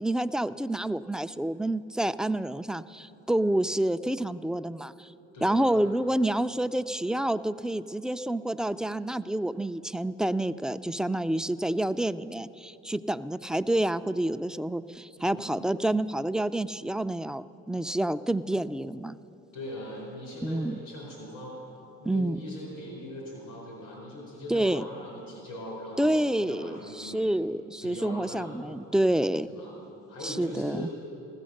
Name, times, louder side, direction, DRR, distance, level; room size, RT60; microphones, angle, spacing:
voice 1, 0.0-5.1 5.4-19.2 20.4-20.8 22.1-22.4 24.5-24.9 26.0-29.5 30.2-30.9, right 1 dB, ahead, 11 dB, 0.4 m, -28 dB
voice 2, 5.3-5.8 15.2-15.6 19.5-21.5 22.0-27.3 27.8-28.5 29.5-29.8 30.1-30.9, left 1 dB, 90° left, -3 dB, 4.3 m, -40 dB
15.0 x 13.5 x 6.4 m, 2.9 s
supercardioid pair, 60°, 32 cm